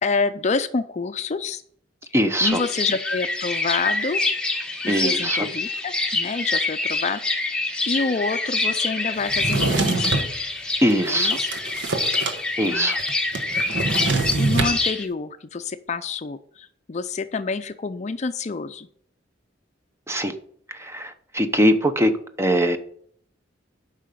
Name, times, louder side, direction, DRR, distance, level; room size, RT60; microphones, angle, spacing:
voice 1, 0.0-1.6 2.4-4.2 4.8-7.5 7.9-10.3 11.0-11.5 12.6-12.9 14.4-18.9, left 4 dB, 40° left, 11 dB, 0.5 m, -28 dB
voice 2, 2.1-2.6 4.9-5.5 10.8-11.4 12.6-13.0 20.1-20.3 20.7-22.1 22.4-22.8, equal, 15° right, 8 dB, 0.8 m, -21 dB
sound 1, 2.4-15.0, left 3 dB, 5° left, 1.2 m, -26 dB
Drawer open or close, 9.3-10.3 10.9-12.4 12.7-12.8 13.0-14.8, right 3 dB, 70° right, 1.2 m, -24 dB
8.9 x 5.6 x 6.7 m, 0.62 s
head